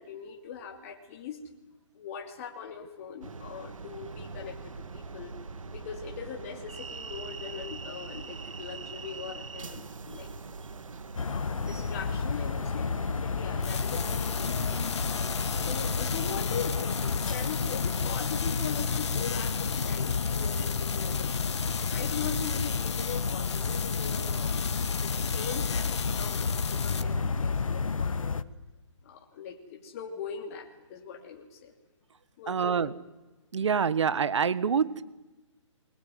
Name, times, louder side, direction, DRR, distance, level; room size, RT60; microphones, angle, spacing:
voice 1, 0.0-1.4 1.9-5.4 5.7-10.3 11.3-14.9 15.5-21.3 21.9-28.4 29.0-31.7 32.4-32.9, left 6 dB, 25° left, 1 dB, 2.9 m, -41 dB
sound 1, 3.2-16.3, right 4 dB, 85° right, 2.4 m, -42 dB
sound 2, 11.2-28.4, left 5 dB, 90° left, 1.4 m, -31 dB
sound 3, 13.6-27.0, left 6 dB, 60° left, 1.9 m, -37 dB
voice 2, 32.5-32.9 33.5-35.0, right 6 dB, 60° right, 17 dB, 1.5 m, -26 dB
23.5 x 21.0 x 9.5 m, 1.1 s
hypercardioid pair, 165°, 17 cm